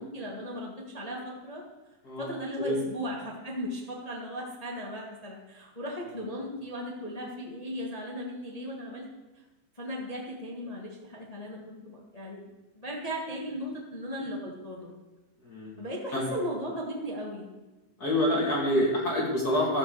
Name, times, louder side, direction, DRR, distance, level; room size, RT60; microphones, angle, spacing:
voice 1, 0.0-1.6 2.2-9.1 9.7-12.4 12.7-14.9 15.8-17.5, equal, 75° left, -2 dB, 0.3 m, -37 dB
voice 2, 15.4-15.8 16.1-16.3 18.0-19.8, left 1 dB, 30° left, -4 dB, 2.6 m, -27 dB
15.0 x 5.8 x 6.7 m, 1.1 s
omnidirectional pair, 4.1 m